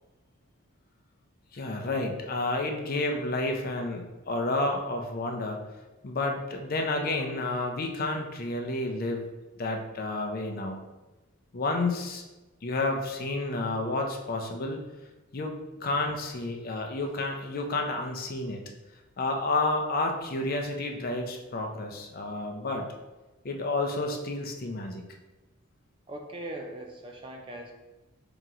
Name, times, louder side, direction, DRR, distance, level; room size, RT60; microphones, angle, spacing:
voice 1, 1.5-5.6 6.0-9.3 9.6-10.8 11.5-12.2 12.6-14.8 15.3-15.5 15.8-18.6 19.2-22.8 23.4-25.0, left 2 dB, 45° left, 3 dB, 0.5 m, -30 dB
voice 2, 26.1-27.7, right 1 dB, 25° right, 2 dB, 0.4 m, -40 dB
4.3 x 2.9 x 3.8 m, 1.1 s
head